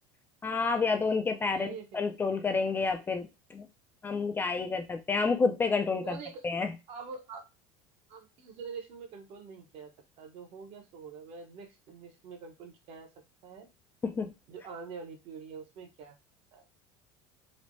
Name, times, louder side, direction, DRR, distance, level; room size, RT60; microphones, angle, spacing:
voice 1, 0.4-3.7 4.0-6.2 6.4-6.7 14.0-14.3, left 4 dB, 15° left, 5 dB, 0.3 m, -29 dB
voice 2, 1.5-2.0 5.9-6.4 6.9-7.4 8.1-9.9 10.2-13.1 13.4-13.7 14.5-16.1 16.5-16.6, right 5 dB, 50° right, 4 dB, 0.8 m, -45 dB
3.2 x 2.1 x 2.6 m, 0.25 s
supercardioid pair, 125°, 12 cm